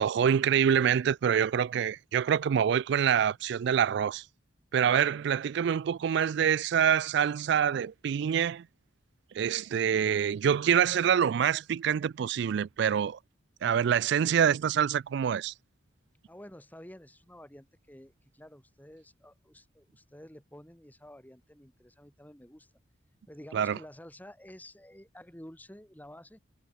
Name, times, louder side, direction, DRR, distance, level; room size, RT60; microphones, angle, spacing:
voice 1, 0.0-4.2 4.7-8.7 9.3-13.2 13.6-15.5 23.5-23.8, right 8 dB, 60° right, 0.3 m, -26 dB
voice 2, 16.3-22.7 23.3-26.4, left 1 dB, 10° left, 2.9 m, -50 dB
head